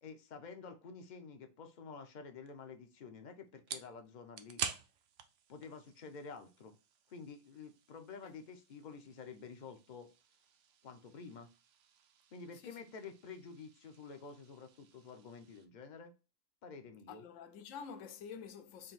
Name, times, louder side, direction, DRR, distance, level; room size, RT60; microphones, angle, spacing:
voice 1, 0.0-4.6 5.5-6.7 7.1-10.1 10.8-11.5 12.3-16.1 16.6-17.2, left 5 dB, 50° left, 0.6 m, -50 dB
sound 1, 2.4-15.7, right 8 dB, 70° right, 0.9 m, -50 dB
voice 2, 17.1-18.9, left 6 dB, 75° left, 0.9 m, -48 dB
3.8 x 2.7 x 4.0 m
omnidirectional pair, 1.3 m